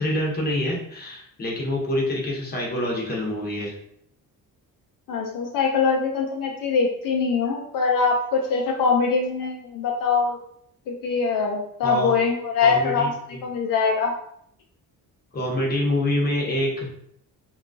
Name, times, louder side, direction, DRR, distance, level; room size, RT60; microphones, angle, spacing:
voice 1, 0.0-3.7 11.8-12.1 12.6-13.1 15.3-16.9, left 1 dB, 25° left, -1 dB, 0.8 m, -26 dB
voice 2, 5.1-10.4 10.9-13.1 13.4-14.1, left 5 dB, 65° left, 0 dB, 0.5 m, -23 dB
2.7 x 2.3 x 2.5 m, 0.71 s
cardioid pair, 120°, 35 cm